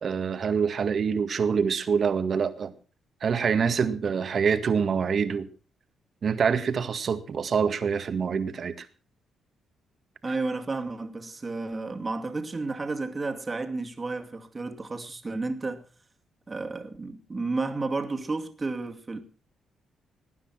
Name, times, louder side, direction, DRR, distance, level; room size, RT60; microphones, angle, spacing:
voice 1, 0.0-2.7 3.2-5.5 6.2-8.9, right 6 dB, 50° right, 1.9 m, -25 dB
voice 2, 10.2-15.8 16.5-19.2, right 3 dB, 25° right, 2.5 m, -32 dB
19.0 x 9.8 x 6.0 m
cardioid pair, 85°, 0 cm